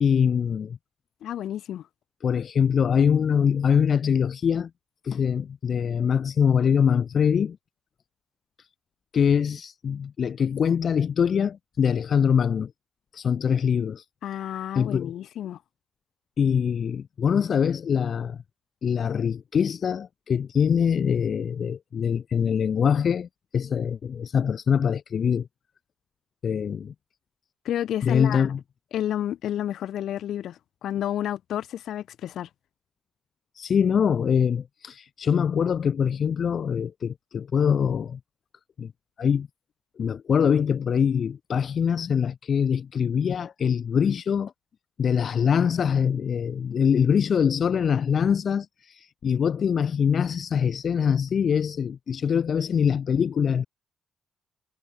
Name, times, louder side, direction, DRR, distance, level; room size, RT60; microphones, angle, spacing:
voice 1, 0.0-0.8 2.2-4.7 5.0-7.6 8.6-8.7 9.1-12.7 13.1-14.0 14.7-15.1 16.4-18.4 18.8-25.5 26.4-26.9 28.0-28.6 33.5-38.2 38.8-38.9 39.2-39.5 40.0-44.5 45.0-53.7, left 7 dB, 50° left, 0.7 m, -23 dB
voice 2, 1.2-1.8 14.2-15.6 27.7-28.5 28.9-32.5, left 11 dB, 75° left, 2.1 m, -30 dB
cardioid pair, 90°, 0 cm